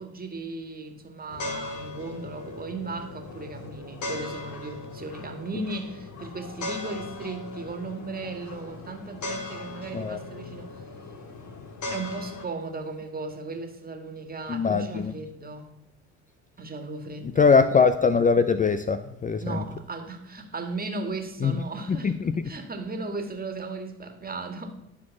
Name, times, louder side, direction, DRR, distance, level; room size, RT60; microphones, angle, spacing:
voice 1, 0.0-10.8 11.9-15.8 16.6-17.5 19.4-24.7, right 3 dB, 25° right, 1.9 m, -36 dB
sound 1, 1.3-12.5, left 2 dB, 55° left, 2.7 m, -38 dB
voice 2, 14.5-15.1 17.4-19.6 21.4-21.5 22.0-22.4, left 5 dB, 25° left, 0.5 m, -22 dB
11.0 x 4.5 x 7.1 m
supercardioid pair, 70°, 34 cm